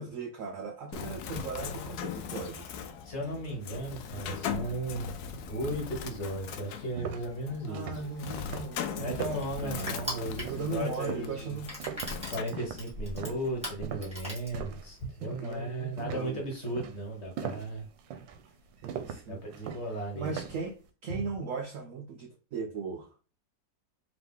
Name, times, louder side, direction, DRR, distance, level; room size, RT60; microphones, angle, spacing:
voice 1, 0.0-2.8 7.7-11.7 15.2-16.4 18.8-19.4 20.1-20.8 21.0-23.1, right 4 dB, 70° right, 0.7 m, -38 dB
Bird, 0.9-12.4, left 7 dB, 70° left, 1.0 m, -40 dB
voice 2, 3.0-7.8 9.0-11.6 12.3-17.9 19.3-20.4, right 1 dB, 45° left, 1.2 m, -36 dB
sound 1, 6.5-14.9 15.2-15.6 16.0-20.7, right 8 dB, 90° right, 1.3 m, -41 dB
Crushing, 8.8-15.1, equal, 5° right, 1.7 m, -41 dB
3.9 x 2.9 x 3.4 m
omnidirectional pair, 2.0 m